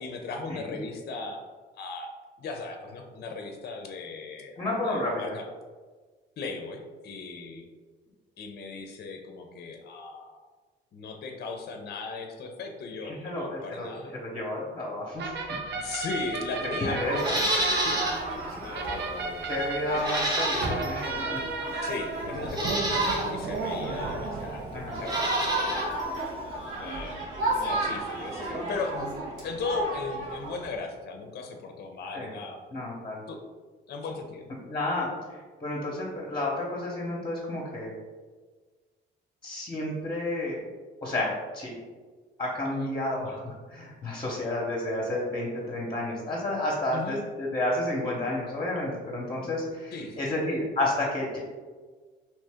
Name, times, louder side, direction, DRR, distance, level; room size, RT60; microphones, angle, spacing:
voice 1, 0.0-1.4 1.7-2.1 2.4-5.5 6.4-7.7 8.4-10.4 10.9-14.2 15.7-20.0 21.8-25.9 26.7-29.2 29.4-32.6 33.3-33.4 33.9-34.5 42.8-42.9 46.9-47.3 49.9-50.3, left 4 dB, 55° left, 4 dB, 0.5 m, -37 dB
voice 2, 4.6-5.3 13.0-13.9 14.1-15.3 16.8-17.4 19.4-21.4 24.7-24.9 32.1-32.3 32.7-33.2 34.7-35.1 35.6-37.9 39.4-40.6 41.0-41.7 42.4-51.4, left 1 dB, 25° left, -3 dB, 0.8 m, -31 dB
sound 1, 15.2-25.5, right 3 dB, 60° right, 0.5 m, -35 dB
sound 2, 17.0-30.7, right 2 dB, 90° right, 1.2 m, -33 dB
Livestock farm animals working animals, 17.2-18.2 18.6-18.7 20.0-21.0 21.8-21.9 22.5-23.3 24.9-25.9 26.1-26.2, right 1 dB, 20° right, 0.8 m, -29 dB
2.9 x 2.7 x 3.4 m, 1.4 s
cardioid pair, 90°, 20 cm